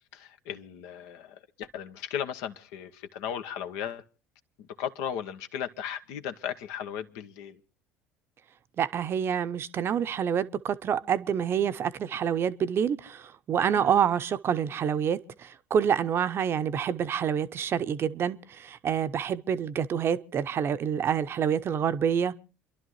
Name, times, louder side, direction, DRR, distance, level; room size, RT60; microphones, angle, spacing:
voice 1, 0.1-4.0 4.6-7.6 13.7-14.0, left 9 dB, 65° left, 1.1 m, -36 dB
voice 2, 8.8-22.3, right 8 dB, 40° right, 0.8 m, -27 dB
29.0 x 12.0 x 3.1 m
figure-of-eight pair, 60°, 6 cm